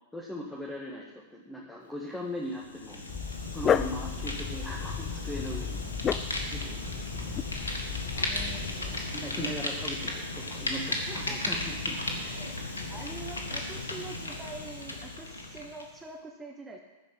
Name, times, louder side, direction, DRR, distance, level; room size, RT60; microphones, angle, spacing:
voice 1, 0.1-3.1 3.5-5.8 6.5-7.4 8.1-12.0, equal, 5° left, -3 dB, 1.8 m, -39 dB
Fire, 2.5-15.9, left 2 dB, 80° left, 1.8 m, -35 dB
Dog, 3.1-9.0, left 8 dB, 25° left, 0.4 m, -33 dB
voice 2, 8.2-9.0 10.9-11.6 12.2-12.5 12.9-16.8, right 3 dB, 10° right, 1 dB, 1.3 m, -45 dB
13.0 x 5.2 x 8.7 m, 1.1 s
figure-of-eight pair, 100°, 0 cm